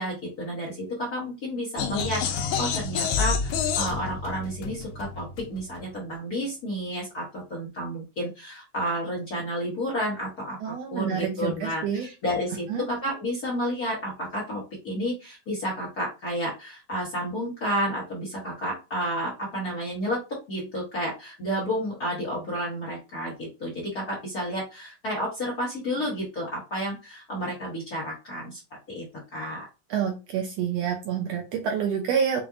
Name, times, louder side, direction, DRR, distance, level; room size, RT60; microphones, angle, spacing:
voice 1, 0.0-20.2 20.5-28.6 28.9-29.0 29.3-29.7, equal, 45° left, -6 dB, 1.3 m, -31 dB
sound 1, 1.8-5.9, left 6 dB, 85° left, 2.0 m, -29 dB
voice 2, 10.6-12.1 12.7-12.9 29.9-32.4, right 7 dB, 80° right, 3 dB, 1.5 m, -28 dB
5.8 x 2.5 x 2.4 m, 0.29 s
omnidirectional pair, 3.4 m